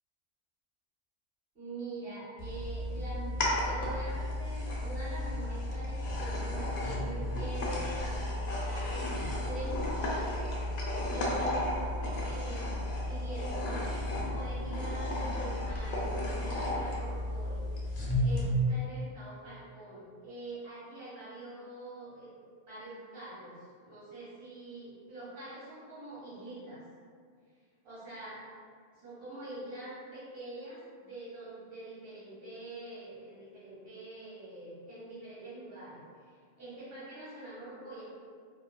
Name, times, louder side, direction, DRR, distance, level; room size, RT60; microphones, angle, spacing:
voice 1, 1.5-9.0 9.4-10.5 11.1-12.7 13.1-17.6 18.1-22.3 22.6-26.8 27.8-28.4 28.9-38.0, right 1 dB, 60° right, -10 dB, 1.3 m, -44 dB
sound 1, 2.4-18.4, left 1 dB, 55° left, 0.5 m, -33 dB
2.9 x 2.2 x 2.2 m, 2.1 s
omnidirectional pair, 1.1 m